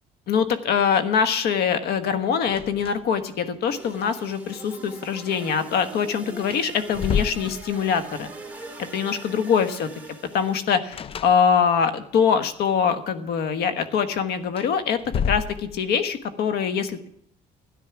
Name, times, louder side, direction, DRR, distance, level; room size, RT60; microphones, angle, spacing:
voice 1, 0.3-8.3 8.8-9.9 10.3-15.0 15.3-17.1, left 7 dB, 70° left, 10 dB, 1.3 m, -23 dB
sound 1, 2.4-3.3 3.6-3.7 5.9-6.0 6.4-8.1 10.9-11.9 14.4-16.1, left 7 dB, 35° left, 0.4 m, -30 dB
sound 2, 3.7-10.8, right 2 dB, 10° right, 2.1 m, -42 dB
13.0 x 9.9 x 5.9 m, 0.68 s
cardioid pair, 110°, 17 cm